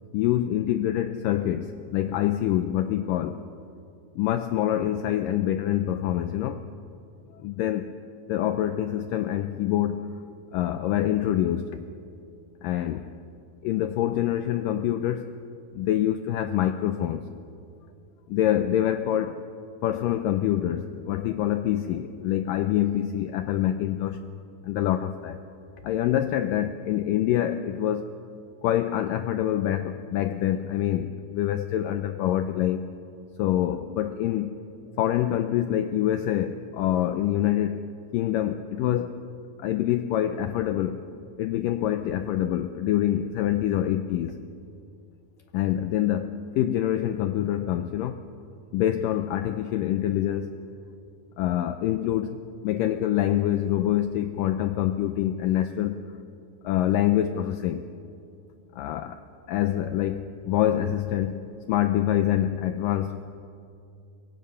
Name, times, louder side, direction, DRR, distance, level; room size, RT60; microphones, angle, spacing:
voice 1, 0.1-3.4 4.2-6.7 7.3-7.9 8.3-10.1 10.5-11.8 12.6-13.1 13.6-15.3 15.7-17.3 18.3-19.4 19.8-24.2 24.6-25.4 25.8-28.1 28.6-32.8 33.4-34.5 35.0-37.9 38.1-39.2 39.6-41.0 41.4-44.3 45.5-48.2 48.7-50.5 51.4-56.0 56.6-57.9 58.7-59.2 59.5-63.3, left 12 dB, 85° left, 9 dB, 1.9 m, -26 dB
23.5 x 23.0 x 5.6 m, 2.5 s
omnidirectional pair, 4.6 m